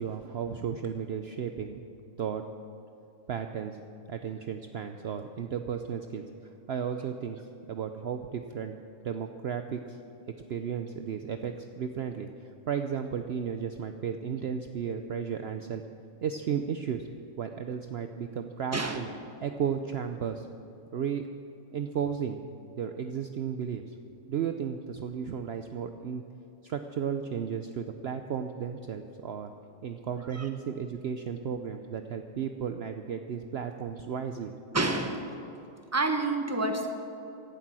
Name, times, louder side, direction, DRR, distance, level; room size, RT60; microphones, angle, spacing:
voice 1, 0.0-1.9 2.2-2.4 3.3-3.8 4.1-7.4 7.7-8.8 9.0-10.0 10.5-15.8 16.2-17.1 17.4-19.1 19.4-20.5 20.9-21.3 21.7-22.4 22.8-23.9 24.3-26.2 26.6-29.5 29.8-34.5, right 7 dB, 60° right, 7 dB, 0.8 m, -34 dB
voice 2, 34.7-35.2 35.9-36.9, right 2 dB, 10° right, 5 dB, 1.2 m, -28 dB
17.0 x 11.5 x 6.1 m, 2.8 s
omnidirectional pair, 1.4 m